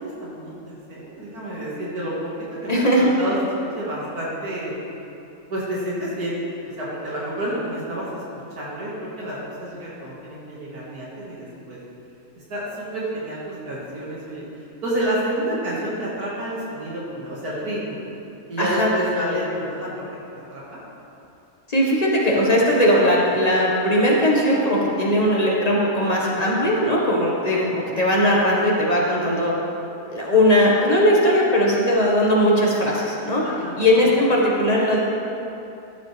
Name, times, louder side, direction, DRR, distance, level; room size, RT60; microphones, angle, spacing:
voice 1, 0.0-3.4 3.7-4.7 5.5-6.4 6.6-8.2 8.5-11.8 12.3-18.0 18.5-20.1 20.5-20.8 26.2-26.5 33.4-34.2, right 1 dB, 90° right, -7 dB, 2.4 m, -29 dB
voice 2, 2.7-3.1 18.6-18.9 21.7-29.5 30.1-33.4 33.8-35.0, equal, 25° left, -4 dB, 1.5 m, -19 dB
13.5 x 7.7 x 3.4 m, 2.8 s
omnidirectional pair, 1.6 m